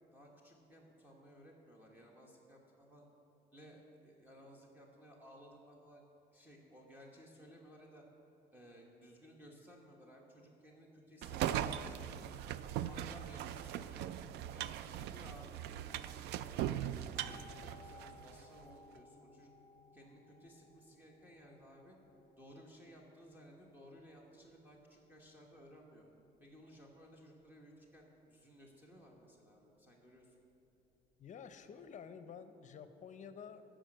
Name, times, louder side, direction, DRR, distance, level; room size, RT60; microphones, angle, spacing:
voice 1, 0.1-3.0 3.5-6.0 6.3-8.0 8.5-12.6 12.9-14.1 14.5-19.5 19.9-22.0 22.4-26.0 26.4-30.4, equal, 10° right, -3 dB, 1.2 m, -58 dB
sound 1, 11.2-18.4, right 11 dB, 80° right, 0.4 m, -40 dB
sound 2, 17.1-31.9, left 3 dB, 15° left, 1.3 m, -64 dB
voice 2, 31.2-33.6, left 7 dB, 45° left, 11 dB, 0.6 m, -50 dB
11.5 x 5.0 x 7.7 m, 3.0 s
cardioid pair, 110°, 17 cm